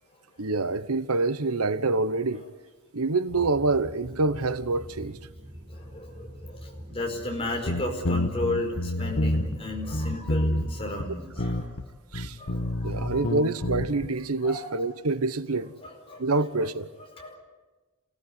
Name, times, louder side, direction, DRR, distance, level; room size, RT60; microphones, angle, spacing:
voice 1, 0.4-2.4 2.9-5.2 12.1-12.4 12.8-15.7 16.2-16.9, right 3 dB, 85° right, 1.0 m, -26 dB
sound 1, 3.3-11.4, equal, 20° right, 6.0 m, -43 dB
voice 2, 5.7-11.7 12.4-13.4 14.4-14.7 15.8-16.2 16.6-16.7 17.1-17.4, left 2 dB, 25° left, 4.8 m, -34 dB
sound 2, 7.7-9.6 9.9-10.7 11.0-11.1 11.4-11.9 12.1-14.1, left 1 dB, 65° left, 1.4 m, -28 dB
27.5 x 17.5 x 9.6 m
head